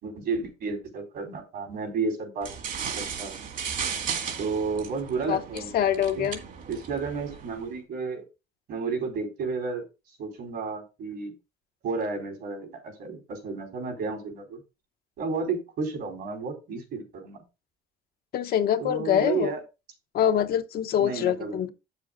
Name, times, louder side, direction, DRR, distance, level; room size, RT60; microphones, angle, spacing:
voice 1, 0.0-2.5 2.9-3.4 4.4-5.7 6.2-6.3 6.7-8.2 8.7-9.8 10.2-11.3 11.8-14.6 15.2-17.4 18.8-19.6 21.0-21.7, right 4 dB, 70° right, 4.2 m, -32 dB
sound 1, 2.4-7.7, right 6 dB, 55° right, 2.3 m, -35 dB
voice 2, 5.7-6.4 18.3-19.5 20.1-21.7, left 10 dB, 65° left, 0.9 m, -24 dB
8.2 x 6.9 x 3.8 m
cardioid pair, 110°, 17 cm